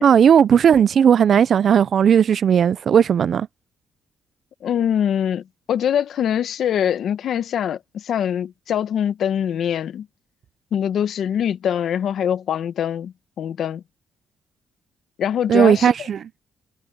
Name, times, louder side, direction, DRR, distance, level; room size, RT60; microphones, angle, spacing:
voice 1, 0.0-3.5 15.5-16.2, right 8 dB, 55° right, 0.4 m, -15 dB
voice 2, 4.6-10.1 10.7-13.8 15.2-16.1, left 9 dB, 65° left, 1.6 m, -23 dB
cardioid pair, 90°, 0 cm